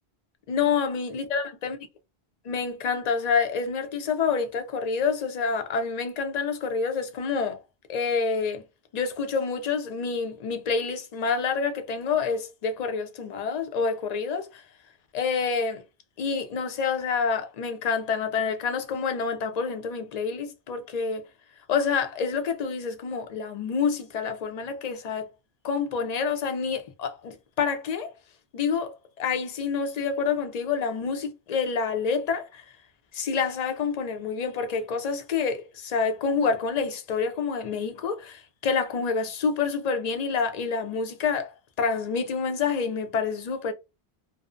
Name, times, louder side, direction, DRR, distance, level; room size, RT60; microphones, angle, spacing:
voice 1, 0.5-1.8 2.5-7.6 7.9-8.6 8.9-14.6 15.1-15.8 16.2-21.2 21.7-25.3 25.6-28.1 28.5-32.6 33.1-43.7, left 5 dB, 50° left, 0.5 m, -28 dB
2.6 x 2.0 x 2.4 m
omnidirectional pair, 1.1 m